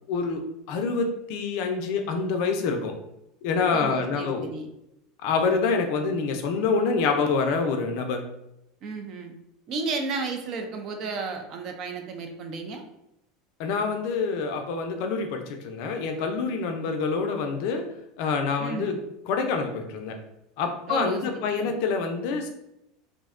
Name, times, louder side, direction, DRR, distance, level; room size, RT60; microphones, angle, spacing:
voice 1, 0.1-0.4 0.7-2.9 3.4-4.5 5.2-8.2 13.6-17.8 18.2-19.0 19.3-20.2 20.6-22.5, left 4 dB, 60° left, 4 dB, 0.4 m, -26 dB
voice 2, 3.7-4.7 8.8-9.3 9.7-12.8 18.6-18.9 20.9-21.2 21.6-21.7, right 4 dB, 45° right, 5 dB, 0.4 m, -33 dB
2.5 x 2.1 x 2.4 m, 0.84 s
supercardioid pair, 140°, 0 cm